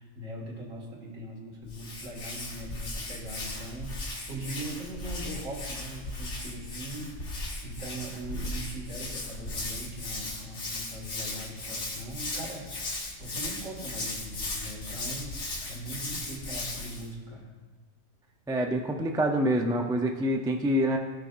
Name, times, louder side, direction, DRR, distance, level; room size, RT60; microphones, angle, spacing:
voice 1, 0.0-12.7 13.2-17.5, right 1 dB, 80° right, -3 dB, 2.6 m, -40 dB
Hands, 1.6-17.1, left 2 dB, 65° left, 1.7 m, -37 dB
voice 2, 18.5-21.0, equal, 5° right, 3 dB, 0.4 m, -26 dB
17.5 x 6.5 x 2.6 m, 1.4 s
omnidirectional pair, 1.3 m